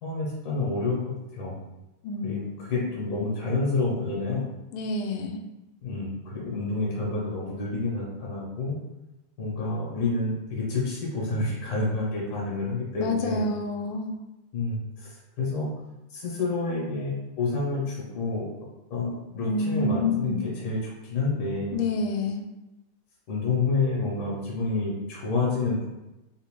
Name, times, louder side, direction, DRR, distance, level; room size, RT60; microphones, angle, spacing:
voice 1, 0.0-1.6 2.2-4.4 5.8-8.8 9.4-13.5 14.5-15.7 16.1-18.5 18.9-21.8 23.3-25.9, left 3 dB, 65° left, -5 dB, 1.5 m, -29 dB
voice 2, 2.0-2.6 4.7-5.4 13.0-14.1 19.4-20.5 21.7-22.5, left 3 dB, 80° left, 3 dB, 1.4 m, -28 dB
3.8 x 2.4 x 3.0 m, 0.96 s
omnidirectional pair, 2.3 m